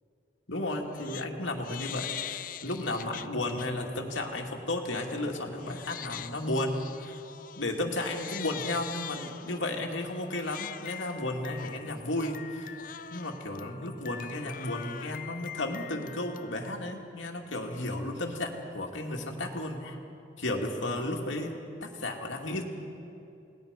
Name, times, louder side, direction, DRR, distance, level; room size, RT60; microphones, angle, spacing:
voice 1, 0.5-7.2 7.6-12.8 13.1-20.0 20.4-22.6, left 1 dB, 85° left, 1 dB, 2.5 m, -33 dB
Crying sobbing, 0.7-1.3 1.6-3.7 4.1-4.4 4.9-16.9, left 10 dB, 45° left, 0.4 m, -43 dB
29.0 x 19.5 x 5.3 m, 2.7 s
head